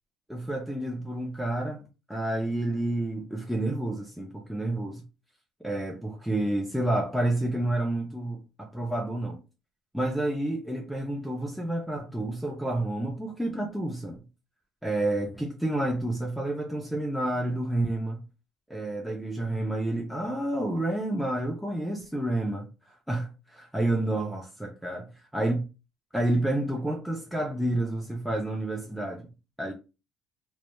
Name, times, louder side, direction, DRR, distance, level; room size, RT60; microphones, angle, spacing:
voice 1, 0.3-1.8 2.1-5.0 5.6-9.4 9.9-14.2 14.8-18.2 18.7-25.6 26.1-29.3 29.6-29.7, right 1 dB, ahead, 0.3 m, -29 dB
2.1 x 2.0 x 3.0 m
cardioid pair, 145°, 0 cm